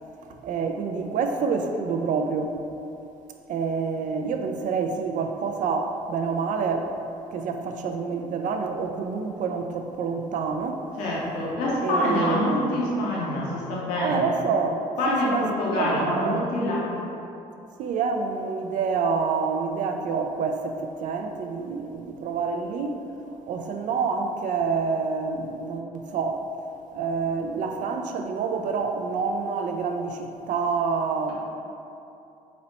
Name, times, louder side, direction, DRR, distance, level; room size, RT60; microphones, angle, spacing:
voice 1, 0.4-2.6 3.5-6.9 7.3-10.8 11.8-12.8 14.0-16.5 17.8-23.1 23.5-26.4 26.9-31.3, right 5 dB, 60° right, 4 dB, 0.4 m, -27 dB
voice 2, 11.0-14.2 15.0-16.8, left 1 dB, 90° left, -6 dB, 0.8 m, -25 dB
4.0 x 2.1 x 4.0 m, 2.7 s
supercardioid pair, 70°, 15 cm